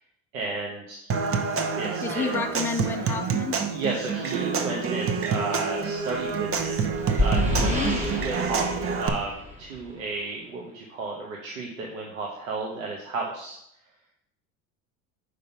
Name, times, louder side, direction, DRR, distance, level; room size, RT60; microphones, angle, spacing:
voice 1, 0.3-1.1 1.8-2.3 3.7-6.9 7.2-7.7 8.0-13.6, right 3 dB, 85° right, -1 dB, 1.1 m, -33 dB
Human voice / Acoustic guitar / Percussion, 1.1-9.1, right 5 dB, 35° right, 0.8 m, -28 dB
voice 2, 2.0-3.6 7.6-8.1, left 5 dB, 5° left, 4 dB, 0.5 m, -30 dB
sound 1, 6.5-10.0, left 1 dB, 20° right, 1.2 m, -28 dB
5.2 x 3.9 x 5.7 m, 0.77 s
hypercardioid pair, 85°, 40 cm